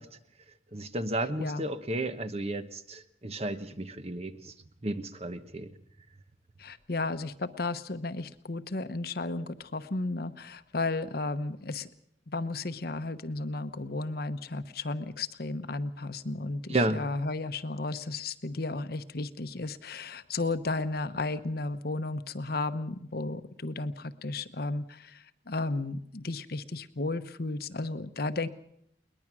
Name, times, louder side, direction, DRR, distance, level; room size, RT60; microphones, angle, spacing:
voice 1, 0.7-4.5 4.8-5.7 16.7-17.0, right 2 dB, 35° right, 10 dB, 1.1 m, -32 dB
voice 2, 6.6-11.9 12.3-28.5, left 2 dB, 55° left, 11 dB, 1.0 m, -34 dB
22.0 x 20.0 x 6.2 m, 0.72 s
head